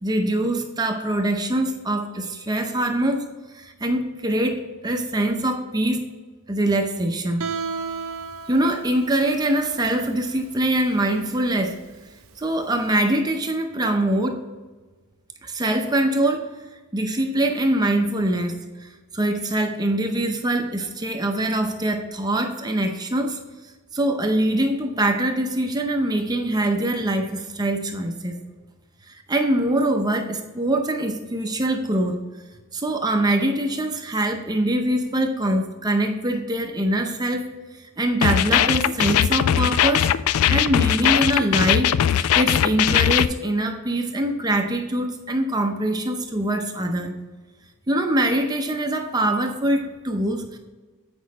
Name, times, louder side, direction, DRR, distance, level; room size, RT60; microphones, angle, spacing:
voice 1, 0.0-3.3 3.5-6.0 6.5-7.4 8.5-11.8 12.4-14.4 15.4-16.5 16.9-23.4 23.9-28.4 29.1-32.2 32.7-37.5 37.8-40.1 40.5-47.1 47.9-50.6, right 1 dB, 20° right, 4 dB, 0.6 m, -23 dB
Guitar, 7.4-13.1, right 5 dB, 65° right, 0.7 m, -35 dB
sound 1, 38.2-43.3, left 10 dB, 70° left, 0.3 m, -20 dB
8.5 x 5.1 x 4.1 m, 1.3 s
head